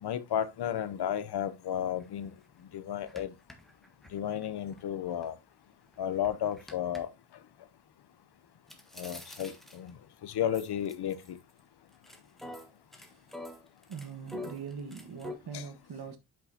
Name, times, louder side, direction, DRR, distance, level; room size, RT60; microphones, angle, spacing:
voice 1, 0.0-2.3 2.7-3.3 4.1-5.4 6.0-7.1 9.0-10.0 10.2-11.4 15.5-15.6, left 10 dB, 85° left, 0.8 m, -33 dB
sound 1, 2.0-2.1 2.5-2.6 3.0-5.3 5.7-7.0 8.7-10.0 10.5-11.6 11.9-15.3, left 1 dB, ahead, 1.4 m, -46 dB
voice 2, 13.9-16.2, right 6 dB, 75° right, 1.5 m, -42 dB
8.5 x 6.2 x 2.8 m
wide cardioid pair, 125°, 38 cm